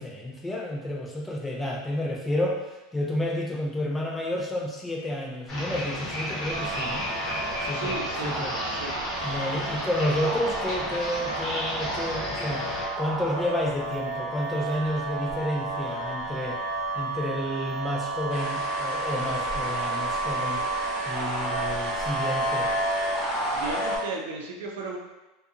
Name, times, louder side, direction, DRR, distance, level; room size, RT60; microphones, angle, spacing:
voice 1, 0.0-7.1 7.7-8.5 9.2-12.7 13.0-16.6 16.9-20.6 21.1-22.8, left 1 dB, 5° left, -2 dB, 0.3 m, -30 dB
sound 1, 5.5-12.8, left 1 dB, 20° left, 0.7 m, -33 dB
sound 2, 6.5-24.0, right 2 dB, 25° right, 0.7 m, -31 dB
voice 2, 7.7-9.1 23.5-25.0, right 3 dB, 85° right, 0 dB, 0.5 m, -35 dB
sound 3, 18.3-24.0, left 1 dB, 60° left, 0.9 m, -36 dB
2.7 x 2.3 x 2.4 m, 1.0 s
supercardioid pair, 170°, 0 cm